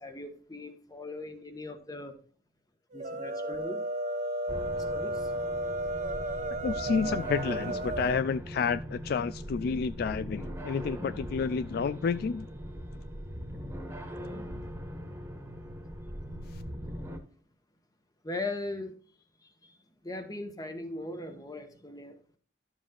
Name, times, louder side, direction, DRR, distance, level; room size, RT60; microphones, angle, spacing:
voice 1, 0.0-2.1 2.9-3.8 4.7-5.3 14.2-14.3 18.2-19.0 19.4-19.8 20.0-22.2, left 2 dB, 20° left, 1.3 m, -39 dB
sound 1, 2.9-8.2, right 1 dB, 45° right, 0.9 m, -33 dB
sound 2, 4.5-17.2, equal, 15° right, 1.5 m, -40 dB
voice 2, 6.6-12.5 16.5-16.6, left 5 dB, 55° left, 0.3 m, -30 dB
12.0 x 7.3 x 2.4 m
head